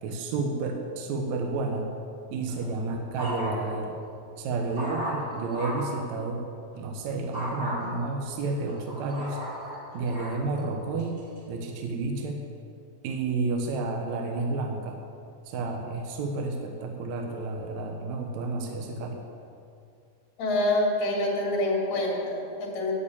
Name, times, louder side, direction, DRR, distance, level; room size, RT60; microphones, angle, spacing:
voice 1, 0.0-1.9 2.3-4.0 4.4-6.5 6.7-9.4 9.9-11.2 11.5-12.4 13.0-15.0 15.5-19.2, right 3 dB, 70° right, 3 dB, 1.8 m, -31 dB
sound 1, 2.5-3.8 4.3-6.0 7.3-7.8 8.4-10.4 11.0-11.4, equal, 30° right, 3.0 m, -35 dB
voice 2, 20.4-22.9, left 1 dB, 50° left, -4 dB, 3.4 m, -26 dB
10.5 x 7.2 x 8.5 m, 2.4 s
omnidirectional pair, 4.5 m